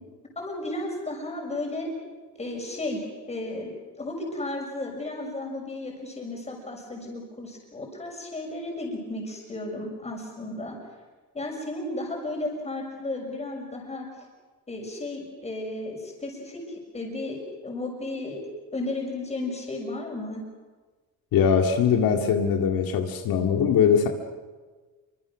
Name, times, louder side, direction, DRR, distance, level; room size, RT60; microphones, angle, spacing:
voice 1, 0.3-1.9 2.3-10.8 11.3-14.1 14.7-18.4 18.7-20.4, left 2 dB, 20° left, 1 dB, 6.5 m, -34 dB
voice 2, 21.3-24.1, left 7 dB, 85° left, 3 dB, 2.3 m, -21 dB
27.5 x 24.5 x 6.2 m, 1.3 s
cardioid pair, 150°, 34 cm